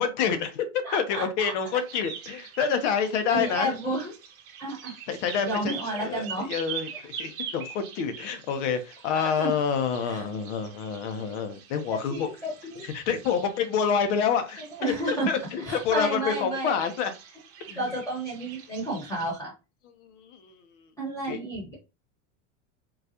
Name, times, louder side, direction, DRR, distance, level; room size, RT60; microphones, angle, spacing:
voice 1, 0.0-3.7 5.1-5.7 6.0-12.3 12.9-17.1 17.7-17.8 20.2-20.5 21.3-21.4, left 6 dB, 70° left, 8 dB, 0.8 m, -28 dB
voice 2, 0.8-1.5 3.3-4.1 4.6-4.9 5.4-6.5 9.1-9.5 10.0-10.3 11.9-12.9 14.7-15.3 15.6-16.8 17.6-19.5 21.0-21.7, right 1 dB, 10° left, -3 dB, 1.0 m, -31 dB
sound 1, 1.7-19.3, right 7 dB, 40° right, 0.8 m, -44 dB
3.9 x 2.3 x 2.8 m, 0.28 s
supercardioid pair, 150°, 36 cm